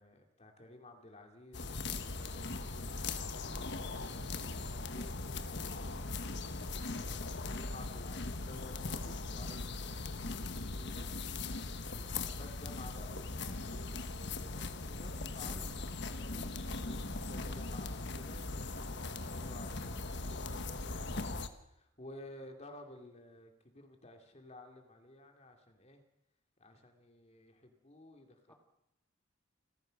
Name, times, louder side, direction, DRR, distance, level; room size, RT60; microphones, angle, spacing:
voice 1, 0.0-3.0 3.8-11.1 11.8-15.9 16.2-26.0 26.6-28.5, left 1 dB, 35° left, 4 dB, 2.6 m, -54 dB
sound 1, 1.5-21.5, left 3 dB, 60° left, 1.4 m, -40 dB
voice 2, 3.4-3.9 15.4-15.7 28.5-28.6, equal, 10° left, 2 dB, 2.5 m, -53 dB
29.0 x 14.5 x 6.5 m, 0.83 s
head